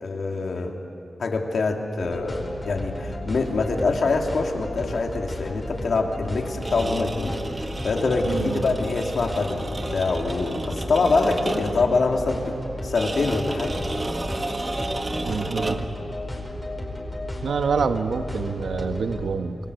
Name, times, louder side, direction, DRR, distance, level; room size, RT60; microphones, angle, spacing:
voice 1, 0.0-0.8 1.2-13.8, left 3 dB, 65° left, 2 dB, 2.8 m, -25 dB
sound 1, 2.0-19.2, left 1 dB, 15° left, 4.8 m, -34 dB
sound 2, 6.5-11.9 12.9-16.0, right 2 dB, 30° right, 1.5 m, -32 dB
voice 2, 8.3-8.6 15.2-15.9 17.4-19.6, right 5 dB, 85° right, 8 dB, 1.2 m, -26 dB
28.0 x 22.0 x 8.1 m, 2.7 s
wide cardioid pair, 115°, 0 cm